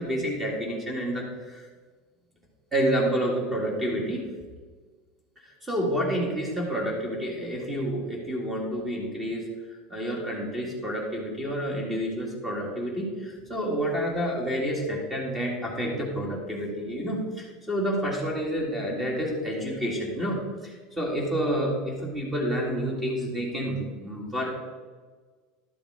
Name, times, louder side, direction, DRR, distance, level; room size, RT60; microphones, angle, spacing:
voice 1, 0.0-1.7 2.7-4.2 5.4-24.5, equal, 10° right, -2 dB, 2.2 m, -29 dB
12.0 x 7.1 x 4.9 m, 1.4 s
supercardioid pair, 155°, 0 cm